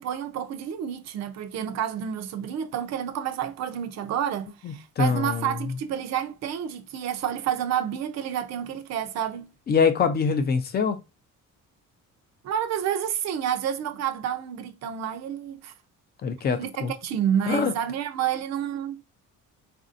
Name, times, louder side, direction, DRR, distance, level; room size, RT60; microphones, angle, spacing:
voice 1, 0.0-9.5 12.4-15.7 16.6-19.0, right 9 dB, 55° right, 0.6 m, -29 dB
voice 2, 4.6-5.7 9.7-11.0 16.2-16.9 17.5-17.7, left 5 dB, 30° left, 0.5 m, -24 dB
4.1 x 2.6 x 2.5 m
cardioid pair, 175°, 32 cm